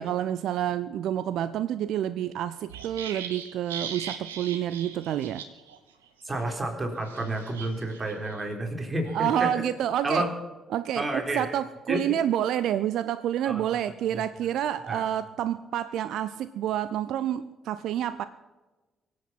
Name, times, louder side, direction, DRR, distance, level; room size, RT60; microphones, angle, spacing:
voice 1, 0.0-5.4 9.1-10.3 10.7-11.1 11.3-18.2, right 11 dB, 65° right, 15 dB, 0.4 m, -28 dB
sound 1, 2.7-5.8 6.0-6.2 7.0-8.4 8.9-9.3, right 7 dB, 85° right, 1.1 m, -40 dB
voice 2, 6.2-9.7 10.0-10.3 11.0-11.5 11.9-12.0 13.5-13.6 14.1-14.2 14.9-15.1, right 1 dB, 25° right, 3 dB, 3.7 m, -30 dB
23.0 x 8.5 x 5.8 m, 1.2 s
figure-of-eight pair, 45°, 0 cm